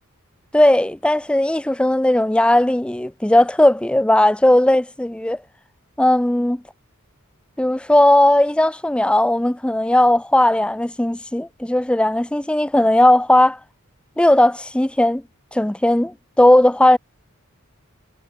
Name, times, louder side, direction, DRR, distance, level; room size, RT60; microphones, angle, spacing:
voice 1, 0.5-5.4 6.0-6.6 7.6-13.6 14.2-15.2 15.5-17.0, left 1 dB, 5° left, 0.4 m, -16 dB
head